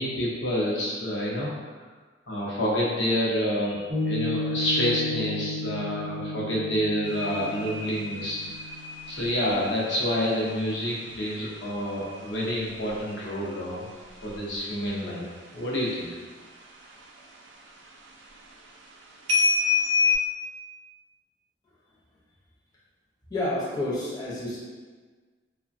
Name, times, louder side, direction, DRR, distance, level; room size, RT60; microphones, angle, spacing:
voice 1, 0.0-1.5 2.3-8.4 9.1-13.9 14.2-15.3 15.5-16.1, equal, 70° left, -5 dB, 0.6 m, -28 dB
Piano, 3.9-10.6, left 1 dB, 30° right, 0.6 m, -34 dB
sound 1, 7.0-15.3 15.6-16.1 16.4-17.5 17.9-18.4 19.3-20.1, left 4 dB, 80° right, 0.4 m, -30 dB
voice 2, 23.3-24.6, left 1 dB, 20° left, -8 dB, 0.6 m, -29 dB
3.2 x 2.1 x 2.5 m, 1.4 s
head